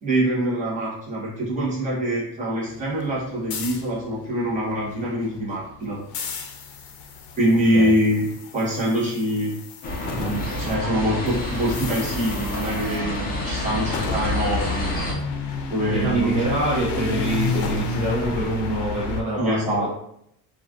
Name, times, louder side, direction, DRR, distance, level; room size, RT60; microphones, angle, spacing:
voice 1, 0.0-6.0 7.4-8.3 8.5-9.6 10.1-14.9 15.7-16.3 19.4-19.9, equal, 15° right, -8 dB, 1.0 m, -24 dB
sound 1, 2.7-10.7 11.0-19.2, left 4 dB, 70° left, 0.6 m, -32 dB
sound 2, 9.8-15.1, left 2 dB, 20° left, 0.4 m, -28 dB
voice 2, 15.9-19.9, right 2 dB, 45° right, -7 dB, 0.8 m, -25 dB
3.1 x 2.4 x 2.4 m, 0.73 s
cardioid pair, 165°, 43 cm